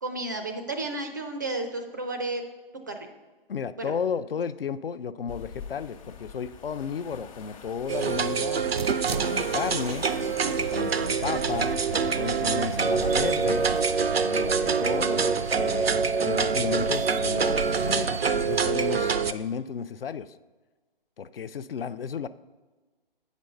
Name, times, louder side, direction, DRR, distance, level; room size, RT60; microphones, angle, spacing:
voice 1, 0.0-2.4 2.9-3.0 3.8-3.9, right 2 dB, 20° right, 5 dB, 0.4 m, -32 dB
voice 2, 3.5-8.6 9.1-10.1 10.4-13.6 14.2-15.9 16.2-20.3 21.2-22.3, left 6 dB, 70° left, 14 dB, 0.5 m, -33 dB
sound 1, 5.3-13.9, left 6 dB, 35° left, 0.9 m, -45 dB
sound 2, 7.9-19.3, right 5 dB, 90° right, 0.5 m, -25 dB
8.2 x 5.2 x 5.4 m, 1.3 s
figure-of-eight pair, 140°, 29 cm